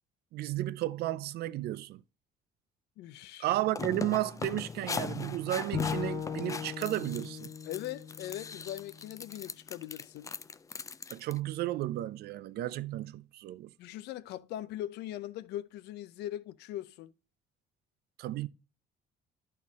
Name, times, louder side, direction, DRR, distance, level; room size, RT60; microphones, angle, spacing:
voice 1, 0.3-2.0 3.4-7.5 11.1-13.7 18.2-18.5, right 14 dB, 70° right, 0.5 m, -33 dB
voice 2, 3.0-3.5 7.6-10.3 13.8-17.1, left 13 dB, 80° left, 0.6 m, -40 dB
sound 1, 3.5-11.4, left 5 dB, 20° left, 0.4 m, -40 dB
Bowed string instrument, 5.7-9.0, left 6 dB, 60° left, 1.4 m, -38 dB
11.0 x 4.3 x 3.5 m
cardioid pair, 110°, 17 cm